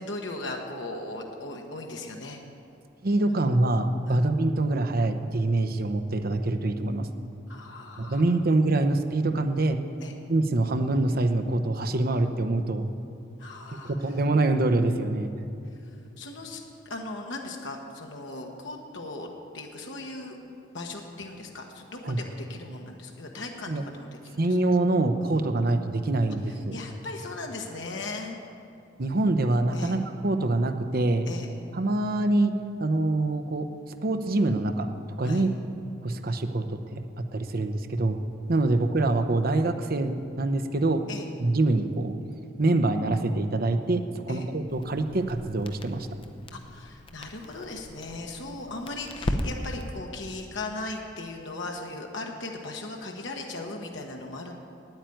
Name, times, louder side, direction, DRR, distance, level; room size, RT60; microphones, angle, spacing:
voice 1, 0.0-2.4 4.1-4.2 7.5-8.2 10.0-10.1 13.4-13.9 16.2-19.3 19.5-24.4 25.2-25.4 26.7-28.4 29.7-30.0 31.3-31.5 35.2-35.5 41.1-41.3 44.3-44.5 46.5-54.5, left 2 dB, 70° left, 1 dB, 1.2 m, -38 dB
voice 2, 3.0-7.1 8.0-9.8 10.3-12.8 13.7-15.3 22.0-22.2 23.7-23.8 24.4-26.8 29.0-31.3 31.7-32.5 32.8-33.7 34.0-34.9 35.2-35.5 36.0-37.0 37.3-38.2 38.5-41.0 41.4-42.2 42.6-46.1, right 2 dB, 50° right, 7 dB, 0.8 m, -25 dB
Crackle, 44.7-50.0, left 1 dB, 30° left, 0.7 m, -37 dB
9.1 x 9.1 x 9.2 m, 2.5 s
head